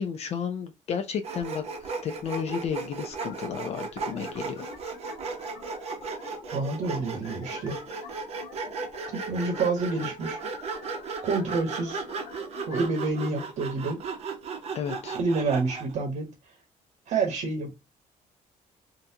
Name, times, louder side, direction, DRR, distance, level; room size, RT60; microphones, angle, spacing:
voice 1, 0.0-4.7 14.7-15.2, left 7 dB, 50° left, 0.5 m, -33 dB
Sawing, 1.2-15.9, right 4 dB, 50° right, 0.8 m, -36 dB
sound 1, 3.2-13.2, left 5 dB, 75° left, 0.9 m, -46 dB
voice 2, 6.5-7.8 9.1-10.4 11.2-12.0 12.6-14.0 15.1-16.3 17.1-17.7, right 3 dB, 65° right, 1.1 m, -28 dB
3.9 x 2.3 x 2.8 m
cardioid pair, 150°, 14 cm